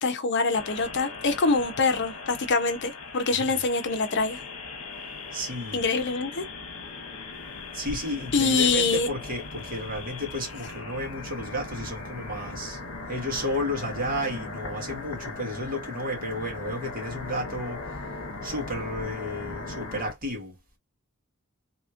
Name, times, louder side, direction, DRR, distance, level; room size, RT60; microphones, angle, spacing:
voice 1, 0.0-4.4 5.7-6.4 8.3-9.1, left 4 dB, 55° left, 0.7 m, -25 dB
sound 1, 0.5-20.1, left 3 dB, 70° left, 1.0 m, -39 dB
voice 2, 5.3-5.8 7.7-12.8 13.1-17.8 18.4-20.5, equal, 40° right, 1.9 m, -32 dB
3.4 x 3.0 x 2.4 m
head